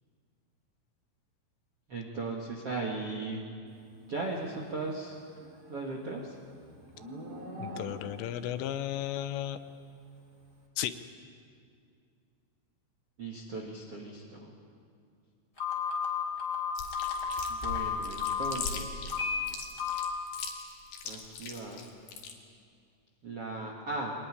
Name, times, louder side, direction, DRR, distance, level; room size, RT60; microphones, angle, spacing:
voice 1, 1.9-3.4 4.1-5.2 5.7-6.4 13.2-14.4 17.5-19.3 21.0-21.9 23.2-24.1, right 3 dB, 55° right, 0 dB, 1.6 m, -37 dB
Livestock farm animals working animals, 5.1-8.4, equal, 20° right, 3.3 m, -44 dB
voice 2, 7.6-9.6 10.8-10.9, left 12 dB, 80° left, 11 dB, 3.2 m, -34 dB
Telephone, 15.6-18.5 19.1-19.4 19.8-20.1, left 7 dB, 15° left, 3.4 m, -32 dB
Chewing mastication, 16.8-22.3, left 6 dB, 60° left, 4.0 m, -40 dB
24.5 x 20.0 x 9.9 m, 2.3 s
omnidirectional pair, 5.9 m